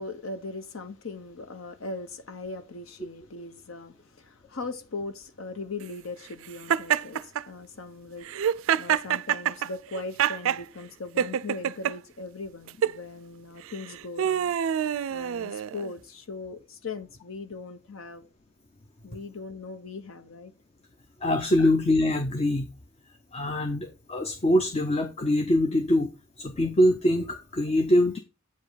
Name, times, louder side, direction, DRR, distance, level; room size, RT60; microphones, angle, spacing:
voice 1, 0.0-8.5 8.8-14.5 15.1-18.3 19.0-20.5 21.6-21.7, left 3 dB, 75° left, 1.0 m, -39 dB
Laughter, 6.7-7.4 8.2-10.6 11.2-11.9 12.7-13.0 13.7-15.9, right 9 dB, 70° right, 0.3 m, -26 dB
voice 2, 21.2-22.7 23.3-26.1 26.4-28.2, left 1 dB, 30° left, 0.5 m, -23 dB
8.1 x 5.1 x 3.9 m
head